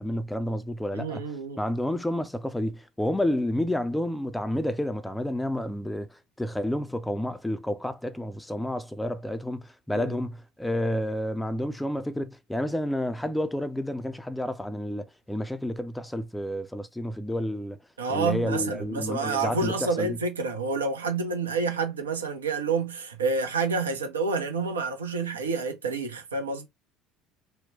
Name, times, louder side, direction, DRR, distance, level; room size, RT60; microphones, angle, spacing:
voice 1, 0.0-1.2 1.6-17.8 18.1-20.2, left 1 dB, 5° left, 0.3 m, -30 dB
voice 2, 0.9-1.6 9.9-10.2 18.0-26.7, right 4 dB, 75° right, 0.5 m, -28 dB
2.8 x 2.1 x 2.6 m
figure-of-eight pair, 65°, 0 cm